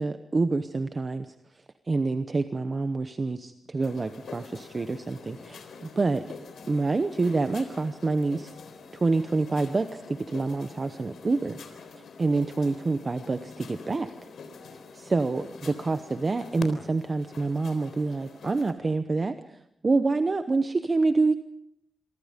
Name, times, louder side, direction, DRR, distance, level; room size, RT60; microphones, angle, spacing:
voice 1, 0.0-1.3 1.9-5.6 5.9-6.2 6.7-8.5 8.9-11.6 12.2-14.1 14.9-19.3 19.8-21.3, right 3 dB, 30° right, 10 dB, 0.9 m, -27 dB
sound 1, 3.8-18.7, left 5 dB, 90° left, 3.7 m, -45 dB
27.5 x 23.0 x 5.2 m, 0.74 s
wide cardioid pair, 160°, 0 cm